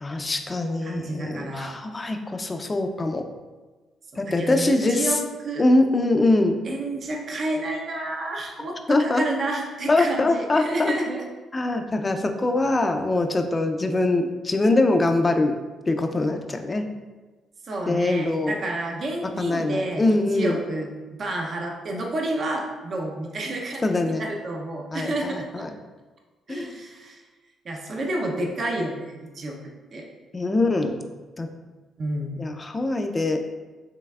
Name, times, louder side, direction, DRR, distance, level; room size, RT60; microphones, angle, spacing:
voice 1, 0.0-3.2 4.2-5.1 5.6-6.6 8.9-9.2 9.9-10.9 11.5-15.5 15.9-16.8 17.9-18.6 19.4-20.6 23.8-24.2 24.9-25.7 26.5-26.7 30.3-31.0 31.4-31.5 32.4-33.4, left 2 dB, 25° left, 6 dB, 0.4 m, -23 dB
voice 2, 0.8-1.7 4.1-5.6 6.6-11.2 12.7-12.9 17.6-25.7 26.5-27.2 27.6-29.6 29.9-30.1 32.0-32.4, right 1 dB, 50° right, 0 dB, 0.6 m, -30 dB
5.4 x 3.3 x 2.3 m, 1.3 s
cardioid pair, 90°, 0 cm